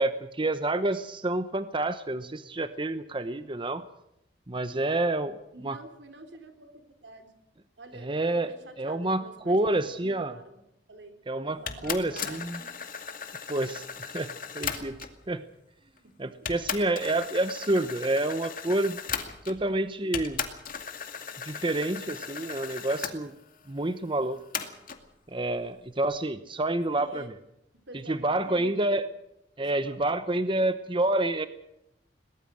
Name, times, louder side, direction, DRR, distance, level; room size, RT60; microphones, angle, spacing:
voice 1, 0.0-3.8 4.5-5.3 5.6-5.8 8.0-10.4 11.3-12.6 13.5-14.3 14.5-15.0 15.3-15.4 16.2-19.0 19.5-20.4 21.4-23.3 23.7-24.4 25.3-27.3 28.1-29.0 29.6-31.5, right 2 dB, 30° right, 11 dB, 0.9 m, -28 dB
voice 2, 5.5-7.3 7.8-8.1 8.5-10.6 10.9-12.8 16.0-16.5 26.9-27.4 27.9-29.0 29.6-30.6, right 2 dB, 85° right, 7 dB, 3.7 m, -49 dB
sound 1, 11.7-15.2 16.0-16.1 16.5-19.7 20.1-23.2 24.5-25.0, left 7 dB, 50° left, 2.3 m, -37 dB
22.0 x 20.0 x 6.4 m, 0.82 s
head